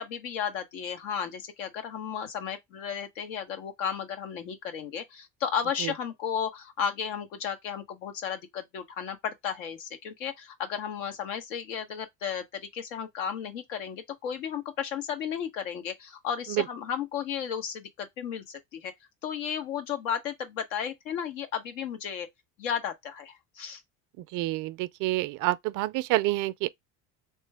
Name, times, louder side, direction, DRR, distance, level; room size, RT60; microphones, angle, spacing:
voice 1, 0.0-18.9 19.2-22.3 22.6-23.8, left 8 dB, 85° left, 1.1 m, -34 dB
voice 2, 24.3-26.7, right 17 dB, 55° right, 0.4 m, -28 dB
3.3 x 3.0 x 3.4 m
supercardioid pair, 85°, 38 cm